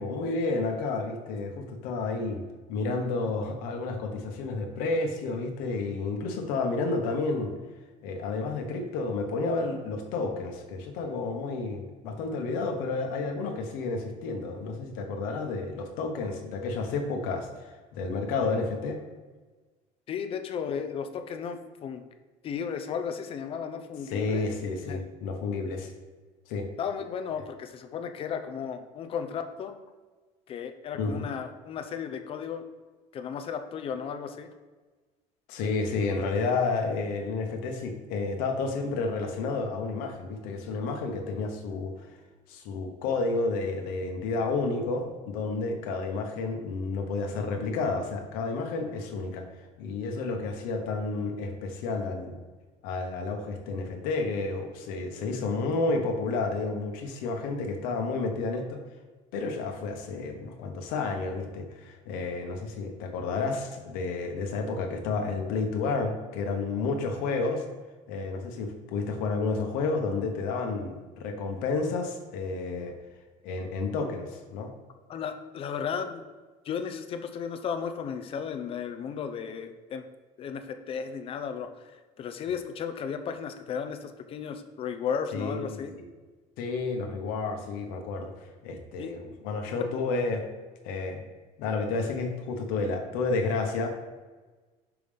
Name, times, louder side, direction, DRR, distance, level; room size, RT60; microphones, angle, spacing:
voice 1, 0.0-2.4 2.7-7.5 8.0-19.0 24.1-25.9 26.5-26.7 31.0-31.2 35.5-42.1 42.5-49.4 49.8-52.4 52.8-58.8 59.3-67.6 68.1-72.9 73.4-74.7 85.3-85.8 86.6-90.4 90.8-91.2 91.6-93.9, left 3 dB, 85° left, 3 dB, 1.1 m, -31 dB
voice 2, 20.1-22.0 22.4-24.4 24.8-25.0 26.8-29.7 30.5-32.6 33.1-34.5 75.1-76.2 76.6-80.1 80.4-85.9 89.0-89.1 89.8-89.9, left 7 dB, 40° left, 8 dB, 0.6 m, -34 dB
6.0 x 3.4 x 5.2 m, 1.3 s
cardioid pair, 140°, 15 cm